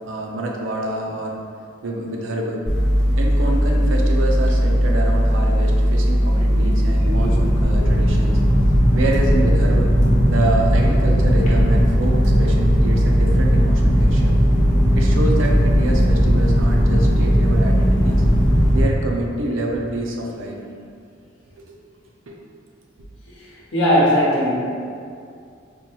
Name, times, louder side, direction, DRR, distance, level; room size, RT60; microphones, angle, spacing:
voice 1, 0.0-1.4 1.8-2.6 3.2-8.4 8.9-9.9 10.3-14.3 15.0-18.2 18.7-20.6 21.6-21.7 22.3-22.4, right 1 dB, 85° right, -1 dB, 0.5 m, -27 dB
sound 1, 2.7-18.8, equal, 40° left, 0.7 m, -17 dB
voice 2, 23.4-24.6, equal, 80° left, -7 dB, 1.0 m, -18 dB
4.3 x 2.3 x 2.9 m, 2.4 s
head